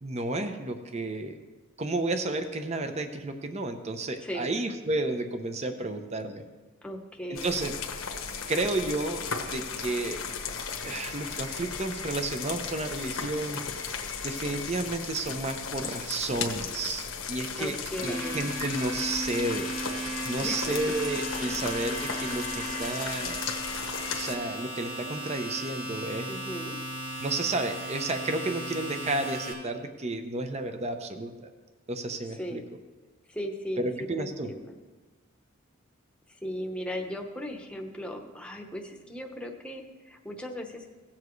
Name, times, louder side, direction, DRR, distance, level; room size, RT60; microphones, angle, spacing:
voice 1, 0.0-1.4 1.8-6.4 7.3-7.7 8.5-10.2 10.8-13.9 14.2-23.4 24.1-26.3 27.2-31.5 31.9-32.6 33.8-34.5, right 2 dB, 30° right, 7 dB, 0.7 m, -32 dB
voice 2, 6.8-7.6 17.6-18.4 20.4-20.8 21.4-21.6 26.3-26.8 32.4-32.6 33.3-33.8 34.2-34.6 36.4-40.9, equal, 5° left, 2 dB, 0.9 m, -37 dB
sound 1, 7.4-24.4, left 6 dB, 90° left, 1.2 m, -36 dB
Domestic sounds home sounds, 17.7-29.5, right 1 dB, 60° right, 3.5 m, -36 dB
17.5 x 7.3 x 3.1 m, 1.3 s
head